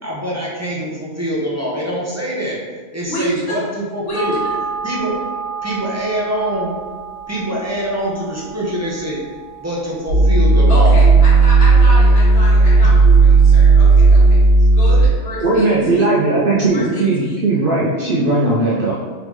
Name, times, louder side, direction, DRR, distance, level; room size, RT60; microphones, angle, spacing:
voice 1, 0.0-2.6 2.9-4.4 4.8-5.2 5.6-6.7 7.3-9.2 9.6-11.0, equal, 15° right, -6 dB, 0.6 m, -24 dB
voice 2, 3.1-3.4 4.0-4.2 10.7-14.4 14.7-16.0 16.7-17.4, equal, 75° left, -8 dB, 1.6 m, -27 dB
sound 1, 4.1-12.9 13.2-13.3, right 5 dB, 30° left, 0.8 m, -31 dB
sound 2, 10.1-15.1, right 3 dB, 50° left, 1.7 m, -10 dB
voice 3, 15.4-19.0, right 2 dB, 55° right, -5 dB, 0.7 m, -17 dB
3.8 x 3.5 x 3.1 m, 1.5 s
omnidirectional pair, 1.2 m